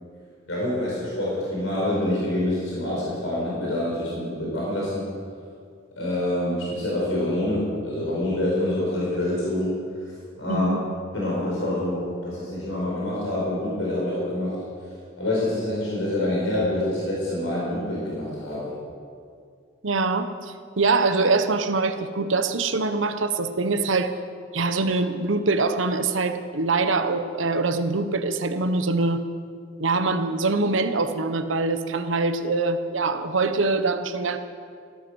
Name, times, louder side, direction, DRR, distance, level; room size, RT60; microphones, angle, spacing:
voice 1, 0.5-5.0 6.0-9.8 10.0-10.7 11.1-14.6 15.2-18.7, left 1 dB, 85° left, -5 dB, 4.7 m, -26 dB
voice 2, 10.5-10.8 19.8-24.1 24.5-29.3 29.8-34.4, right 3 dB, 80° right, 9 dB, 1.0 m, -24 dB
15.0 x 13.0 x 6.3 m, 2.2 s
head